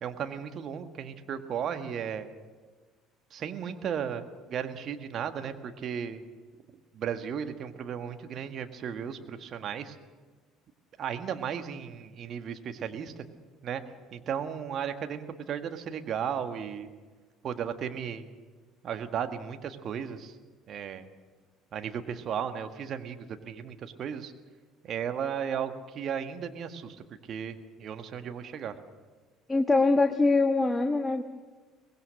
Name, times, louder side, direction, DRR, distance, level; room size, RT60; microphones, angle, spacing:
voice 1, 0.0-2.3 3.3-6.2 6.9-10.0 11.0-13.1 13.6-13.8 14.1-16.9 17.4-18.2 18.8-20.4 20.7-21.0 21.7-24.3 24.8-27.0 27.3-28.7, right 8 dB, 45° right, 7 dB, 1.6 m, -35 dB
voice 2, 29.5-31.2, left 3 dB, 15° left, 6 dB, 1.3 m, -23 dB
23.5 x 19.5 x 6.5 m, 1.3 s
figure-of-eight pair, 55°, 0 cm